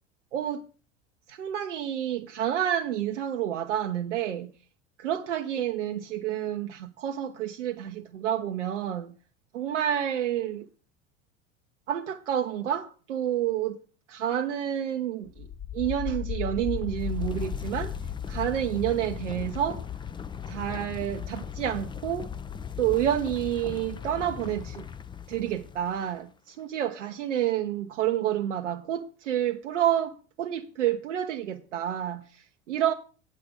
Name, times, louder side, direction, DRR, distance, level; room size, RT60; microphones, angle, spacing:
voice 1, 0.3-0.6 1.3-4.5 5.0-9.1 9.5-10.7 11.9-13.8 14.1-15.5 15.7-18.0 18.3-19.8 20.5-22.3 22.8-24.9 25.3-32.9, right 11 dB, 80° right, 0.7 m, -29 dB
sound 1, 15.3-26.1, left 8 dB, 15° left, 0.5 m, -36 dB
8.4 x 8.3 x 5.1 m
hypercardioid pair, 80°, 36 cm